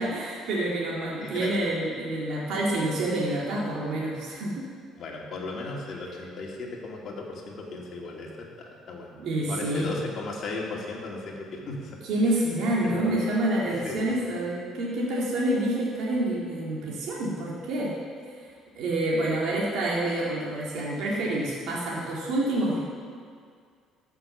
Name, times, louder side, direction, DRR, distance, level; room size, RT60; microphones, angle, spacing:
voice 1, 0.0-4.6 9.2-10.0 12.0-17.9 18.8-22.8, right 1 dB, 65° right, -5 dB, 2.4 m, -27 dB
voice 2, 1.2-1.5 5.0-8.5 8.9-9.1 9.5-12.0 12.8-13.2 13.8-14.0, left 3 dB, 45° left, -2 dB, 2.4 m, -36 dB
13.5 x 6.6 x 7.2 m, 2.1 s
cardioid pair, 140°, 0 cm